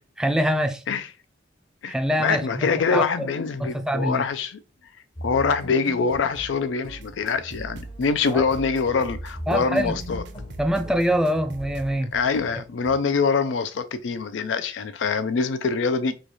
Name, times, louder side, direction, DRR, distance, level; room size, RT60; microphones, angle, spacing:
voice 1, 0.2-0.8 1.9-3.3 3.6-4.2 8.3-8.4 9.5-10.0 10.6-12.1, equal, 5° right, 0.3 m, -24 dB
voice 2, 2.2-4.6 5.2-10.2 12.1-16.1, left 5 dB, 90° left, 0.4 m, -24 dB
sound 1, 5.2-13.0, equal, 25° left, 0.7 m, -41 dB
sound 2, 6.8-11.9, right 3 dB, 65° right, 0.5 m, -40 dB
3.1 x 2.3 x 4.0 m
head